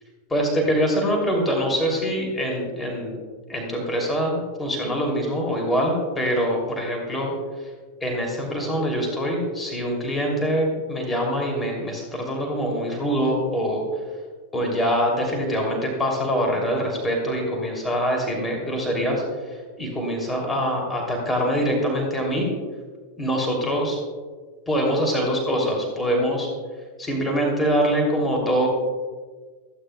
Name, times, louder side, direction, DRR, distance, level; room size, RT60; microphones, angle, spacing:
voice 1, 0.3-3.2 3.5-7.3 8.0-13.8 14.5-19.2 19.8-22.5 23.2-24.0 24.7-26.5 27.0-28.7, equal, 10° left, 0 dB, 3.0 m, -24 dB
27.0 x 10.5 x 2.3 m, 1.5 s
figure-of-eight pair, 90°, 0 cm